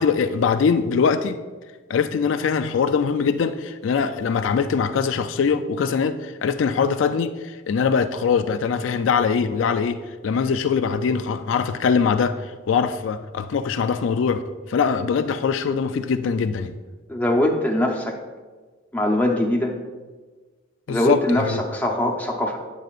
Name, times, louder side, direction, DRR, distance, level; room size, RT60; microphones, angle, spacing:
voice 1, 0.0-1.4 1.9-14.4 14.7-16.8 20.9-21.6, left 6 dB, 75° left, 9 dB, 0.4 m, -22 dB
voice 2, 17.1-18.2 18.9-19.8 20.9-22.6, left 1 dB, 10° left, 0 dB, 0.7 m, -22 dB
9.3 x 7.6 x 2.5 m, 1.3 s
head